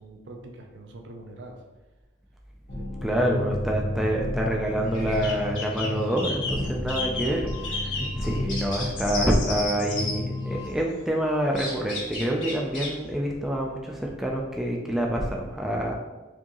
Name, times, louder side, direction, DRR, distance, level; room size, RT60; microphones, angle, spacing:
voice 1, 0.0-1.6 2.8-2.9 7.9-8.6, right 1 dB, 65° right, 3 dB, 0.5 m, -44 dB
sound 1, 2.7-10.7, left 1 dB, 55° left, 1.2 m, -33 dB
voice 2, 3.0-15.9, right 1 dB, ahead, -1 dB, 0.3 m, -27 dB
sound 2, 4.9-10.2 11.5-12.9, left 3 dB, 75° left, 1.5 m, -33 dB
4.5 x 2.8 x 2.9 m, 1.1 s
head